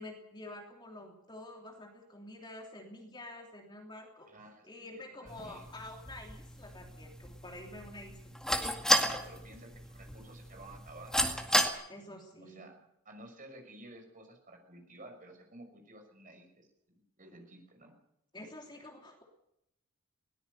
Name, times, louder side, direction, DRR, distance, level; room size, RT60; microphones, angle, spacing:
voice 1, 0.0-4.3 4.6-8.4 11.9-12.7 18.3-19.2, left 1 dB, 20° left, 1 dB, 3.1 m, -48 dB
voice 2, 4.3-5.7 8.9-11.6 12.4-12.7 13.0-17.9, right 1 dB, 35° right, 4 dB, 6.1 m, -53 dB
sound 1, 5.3-11.7, equal, 5° left, 2.0 m, -33 dB
21.5 x 18.5 x 6.8 m, 0.81 s
head